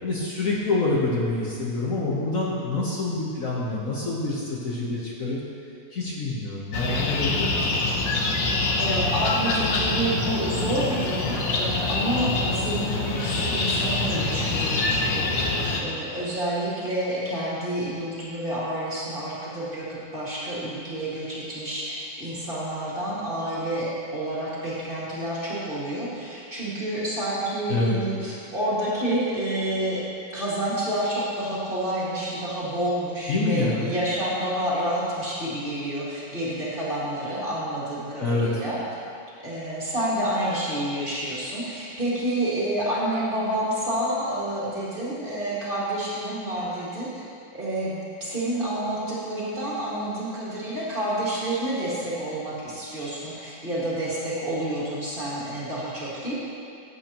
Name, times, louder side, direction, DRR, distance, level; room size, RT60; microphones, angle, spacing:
voice 1, 0.0-5.4 5.9-7.9 27.7-27.9 33.3-33.9 38.2-38.6, left 2 dB, 50° left, -5 dB, 1.4 m, -26 dB
sound 1, 6.7-15.8, left 3 dB, 90° left, 1.7 m, -25 dB
voice 2, 8.8-15.3 15.8-30.1 30.3-38.8 39.4-47.2 47.5-56.3, right 1 dB, 30° right, -7 dB, 2.2 m, -29 dB
14.0 x 8.4 x 3.0 m, 2.4 s
omnidirectional pair, 1.9 m